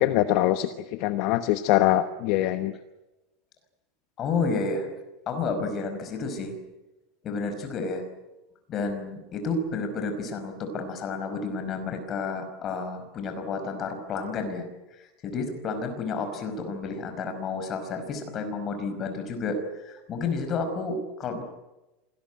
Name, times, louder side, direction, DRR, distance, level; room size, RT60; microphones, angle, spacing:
voice 1, 0.0-2.7, left 14 dB, 50° left, 10 dB, 1.1 m, -23 dB
voice 2, 4.2-4.9 5.3-6.6 7.2-8.0 8.7-21.4, left 4 dB, 25° left, 7 dB, 5.2 m, -31 dB
26.5 x 19.0 x 9.3 m, 1.0 s
supercardioid pair, 170°, 0 cm